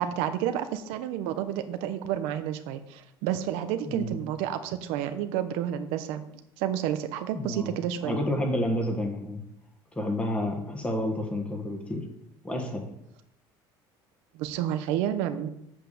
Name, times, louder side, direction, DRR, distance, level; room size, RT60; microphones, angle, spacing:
voice 1, 0.0-6.2 6.6-8.2 14.3-15.5, right 10 dB, 90° right, 9 dB, 1.0 m, -30 dB
voice 2, 3.8-4.2 7.3-9.4 9.9-12.0 12.4-12.9, left 1 dB, 10° left, 3 dB, 1.6 m, -30 dB
8.3 x 5.8 x 6.9 m, 0.76 s
cardioid pair, 155°, 10 cm